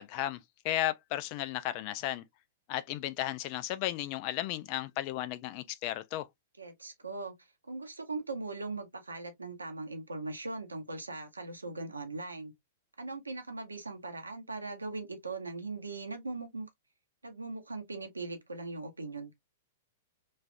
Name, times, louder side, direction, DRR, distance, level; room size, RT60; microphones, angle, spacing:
voice 1, 0.0-2.2 2.7-6.3, left 14 dB, 45° left, 0.4 m, -34 dB
voice 2, 6.6-12.5 13.0-16.7 17.2-19.3, right 3 dB, 85° right, 0.8 m, -40 dB
3.2 x 2.5 x 2.4 m
figure-of-eight pair, 105°, 0 cm